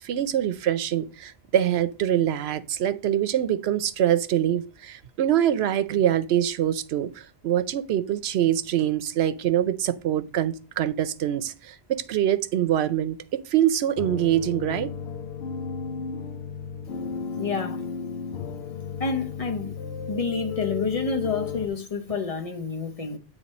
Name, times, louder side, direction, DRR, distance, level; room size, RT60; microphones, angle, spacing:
voice 1, 0.0-14.9, right 11 dB, 85° right, 0.9 m, -24 dB
sound 1, 14.0-21.7, left 6 dB, 85° left, 0.9 m, -34 dB
voice 2, 17.4-17.8 19.0-19.8 20.1-23.2, left 4 dB, 40° left, 0.7 m, -28 dB
9.3 x 3.2 x 4.1 m
omnidirectional pair, 1.0 m